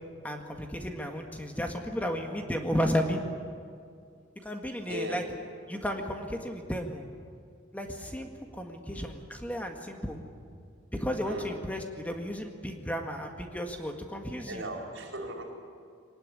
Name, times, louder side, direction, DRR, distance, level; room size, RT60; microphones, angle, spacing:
voice 1, 0.2-3.2 4.4-5.2 5.7-7.0 7.7-10.2 10.9-14.6, equal, 10° left, 3 dB, 1.7 m, -33 dB
voice 2, 4.8-5.3 8.0-8.1 8.9-9.1 11.2-11.5 14.5-15.4, equal, 75° right, 1 dB, 4.9 m, -38 dB
23.0 x 19.5 x 9.9 m, 2.2 s
head